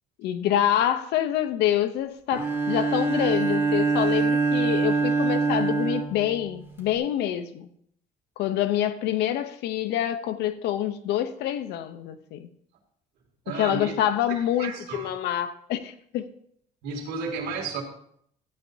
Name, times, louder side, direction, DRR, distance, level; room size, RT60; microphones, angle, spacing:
voice 1, 0.2-7.7 8.4-12.5 13.5-16.2, left 11 dB, 80° left, 0.7 m, -26 dB
Bowed string instrument, 2.3-6.9, right 4 dB, 15° right, 2.4 m, -25 dB
voice 2, 13.4-13.9 14.3-15.1 16.8-17.8, right 4 dB, 80° right, 2.3 m, -33 dB
13.5 x 8.7 x 2.7 m
cardioid pair, 110°, 17 cm